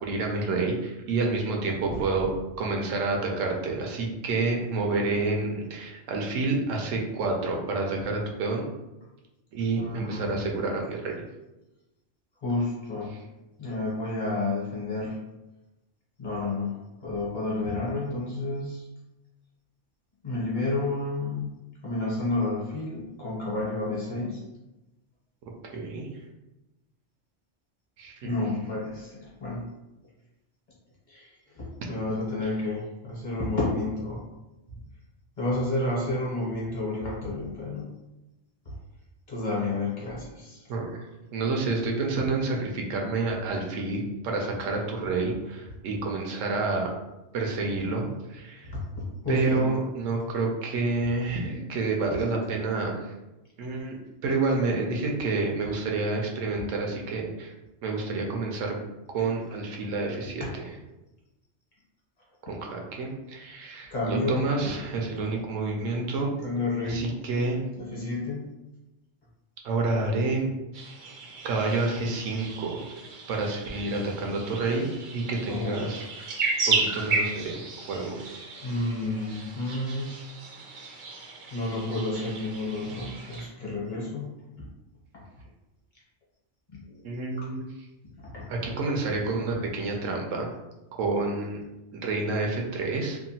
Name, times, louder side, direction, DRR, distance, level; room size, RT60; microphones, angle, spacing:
voice 1, 0.0-8.6 9.5-11.1 25.7-26.1 28.0-28.3 40.7-41.0 41.3-46.9 47.3-48.7 49.3-53.1 53.6-54.0 54.2-57.5 57.8-58.7 59.1-60.4 62.4-66.3 66.8-67.6 69.6-70.5 71.4-72.8 73.3-74.8 75.1-76.3 76.7-78.3 87.0-87.7 88.5-90.5 90.9-91.6 91.9-93.2, right 3 dB, 85° right, 1 dB, 0.9 m, -29 dB
voice 2, 1.9-2.2 9.8-10.4 12.4-13.2 13.6-15.2 16.2-18.9 20.2-21.5 21.8-24.4 28.2-29.7 31.1-34.2 35.4-37.9 38.6-38.7 39.3-40.7 48.6-49.7 52.2-52.4 60.4-60.5 63.9-64.9 65.2-65.3 66.4-67.1 67.8-68.4 75.5-76.1 78.6-80.1 81.5-84.3 86.9-87.1 87.4-87.5 88.2-88.5, left 2 dB, 45° left, -6 dB, 0.9 m, -31 dB
sound 1, 70.7-83.5, right 3 dB, 65° right, 0.5 m, -34 dB
2.8 x 2.2 x 2.7 m, 0.99 s
omnidirectional pair, 1.3 m